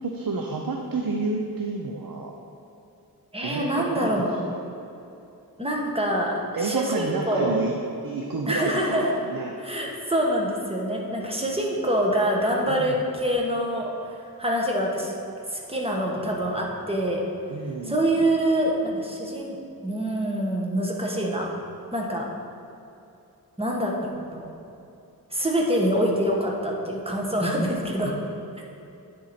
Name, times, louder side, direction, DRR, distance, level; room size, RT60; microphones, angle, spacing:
voice 1, 0.0-2.4 3.4-4.1 4.5-4.7 6.6-7.7 8.0-9.6 12.7-13.0 17.5-18.2, right 3 dB, 65° right, 1 dB, 0.7 m, -30 dB
voice 2, 3.3-4.4 5.6-7.6 8.5-9.1 9.6-15.1 15.5-17.2 17.8-19.6 19.8-21.5 21.9-22.2 23.6-24.5 25.3-28.1, right 1 dB, 15° right, -1 dB, 1.2 m, -25 dB
10.0 x 4.5 x 4.2 m, 2.8 s
wide cardioid pair, 60°, 38 cm